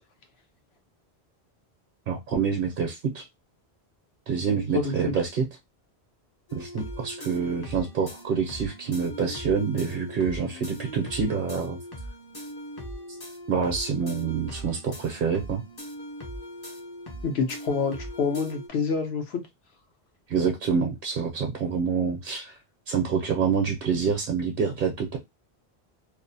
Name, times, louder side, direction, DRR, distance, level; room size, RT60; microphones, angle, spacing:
voice 1, 2.1-3.2 4.3-5.5 6.5-11.8 13.5-15.6 20.3-22.6 22.9-25.2, right 6 dB, 60° right, 1 dB, 0.7 m, -27 dB
voice 2, 4.7-5.1 17.2-19.4, left 5 dB, 80° left, 5 dB, 0.9 m, -27 dB
sound 1, 6.5-18.7, equal, 30° left, 0.4 m, -40 dB
2.5 x 2.0 x 2.6 m, 0.20 s
omnidirectional pair, 1.1 m